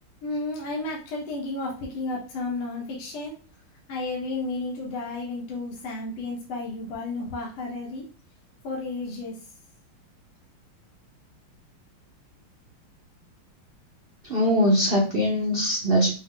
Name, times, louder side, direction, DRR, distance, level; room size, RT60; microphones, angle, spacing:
voice 1, 0.2-3.4 3.9-8.1 8.6-9.4, left 2 dB, 70° left, -2 dB, 1.8 m, -32 dB
voice 2, 14.3-16.1, equal, 75° right, -2 dB, 0.5 m, -21 dB
5.9 x 2.1 x 3.7 m, 0.35 s
omnidirectional pair, 2.4 m